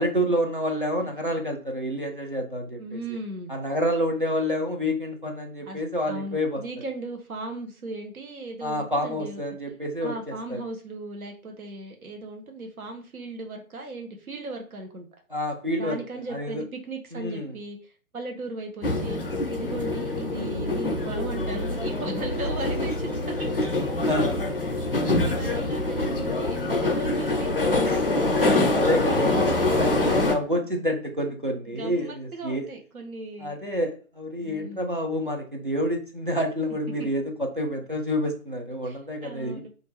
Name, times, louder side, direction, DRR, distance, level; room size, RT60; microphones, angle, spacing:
voice 1, 0.0-3.0 3.5-6.6 8.6-10.6 15.3-16.0 16.3-16.6 17.1-17.5 24.0-24.4 27.8-32.7 33.4-39.6, equal, 40° right, 2 dB, 0.4 m, -28 dB
voice 2, 2.8-3.5 5.6-9.4 10.0-15.1 15.8-19.2 19.5-23.5 25.2-27.5 29.1-29.6 31.7-33.6 34.4-35.0 38.8-39.7, right 2 dB, 70° right, 3 dB, 0.8 m, -37 dB
sound 1, 18.8-30.3, left 2 dB, 40° left, 0.5 m, -25 dB
2.5 x 2.3 x 3.1 m, 0.38 s
figure-of-eight pair, 150°, 44 cm